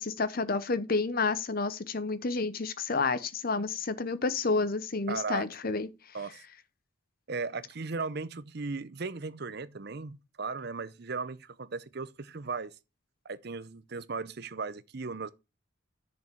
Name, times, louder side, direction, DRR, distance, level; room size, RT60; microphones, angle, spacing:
voice 1, 0.0-5.9, left 3 dB, 45° left, 0.8 m, -30 dB
voice 2, 5.1-5.4 6.1-6.4 7.3-12.7 13.3-15.3, right 4 dB, 50° right, 0.7 m, -37 dB
8.4 x 6.9 x 4.4 m
head